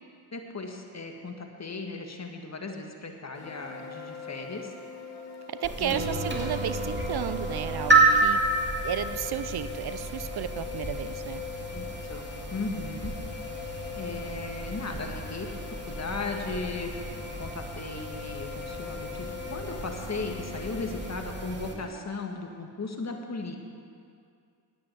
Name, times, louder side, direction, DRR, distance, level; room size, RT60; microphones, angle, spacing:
voice 1, 0.3-4.7 5.8-6.2 11.7-13.2 14.0-15.5 15.9-23.6, left 3 dB, 30° left, 3 dB, 1.9 m, -37 dB
sound 1, 3.3-21.1, left 6 dB, 90° left, 1.5 m, -42 dB
voice 2, 5.5-8.4 8.8-11.4, right 9 dB, 50° right, 12 dB, 0.8 m, -33 dB
sound 2, 5.6-21.7, right 3 dB, 20° right, 2.4 m, -30 dB
10.0 x 8.5 x 8.0 m, 2.3 s
supercardioid pair, 50°, 50 cm